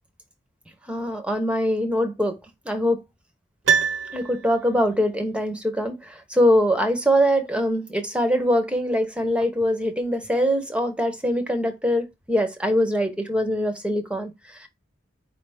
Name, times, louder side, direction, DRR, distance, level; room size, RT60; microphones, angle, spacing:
voice 1, 0.9-2.4 2.6-3.0 4.1-14.7, equal, 5° right, 0.7 m, -23 dB
Piano, 3.6-4.9 5.2-5.3, right 7 dB, 80° right, 0.9 m, -24 dB
4.7 x 3.2 x 3.4 m
head